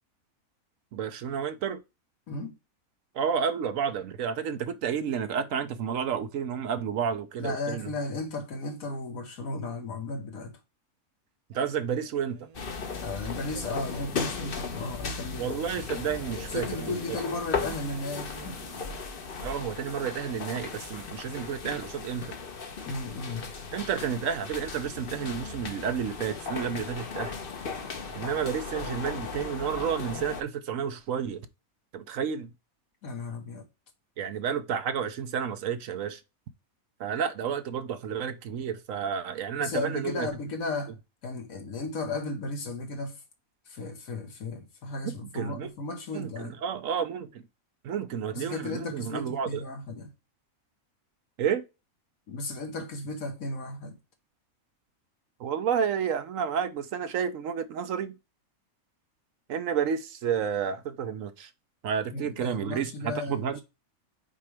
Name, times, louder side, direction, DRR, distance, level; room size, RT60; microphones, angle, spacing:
voice 1, 0.9-1.8 3.1-7.9 11.5-12.4 15.4-17.0 19.4-22.3 23.7-27.4 28.1-31.4 31.9-32.5 34.2-36.2 37.0-40.3 45.2-45.7 46.1-47.4 47.8-49.6 51.4-51.6 55.4-58.2 59.5-61.5 61.8-63.6, right 7 dB, 70° right, 1.0 m, -31 dB
voice 2, 7.4-10.5 13.0-15.6 16.5-18.7 22.9-23.5 33.0-33.7 39.6-40.9 41.2-43.2 43.7-46.6 48.3-50.1 52.3-54.0 62.1-63.6, left 2 dB, 70° left, 1.7 m, -35 dB
Male speech man speaking, 11.5-14.5 16.1-19.1, right 7 dB, 85° right, 1.4 m, -49 dB
sound 1, 12.5-30.4, left 5 dB, 45° left, 1.0 m, -37 dB
5.9 x 4.7 x 3.3 m
omnidirectional pair, 1.5 m